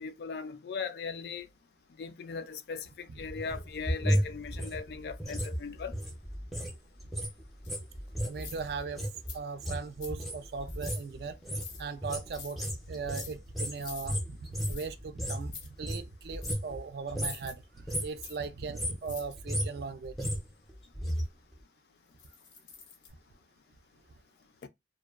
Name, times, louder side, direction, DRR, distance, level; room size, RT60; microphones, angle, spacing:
voice 1, 0.0-1.5 2.0-5.9 24.6-24.7, left 5 dB, 60° left, 0.3 m, -38 dB
sound 1, 3.2-6.7 7.0-15.5 15.8-16.8 17.1-17.5 17.8-18.2 18.6-21.2 21.5-21.6, equal, ahead, 0.5 m, -34 dB
sound 2, 7.6-7.8 8.3-8.8 9.3-9.4 10.0-10.2 10.7-11.0 11.5-11.8 12.3-12.5 13.0-13.3 13.8-14.1 14.6-14.9 15.4-15.7 16.4-16.6 17.2-17.5 18.2-18.4 19.0-19.3 22.2-23.1, left 6 dB, 85° left, 0.7 m, -46 dB
voice 2, 8.3-9.0 9.3-11.4 11.8-17.6 18.0-20.1, right 4 dB, 60° right, 0.3 m, -38 dB
2.5 x 2.2 x 2.3 m
head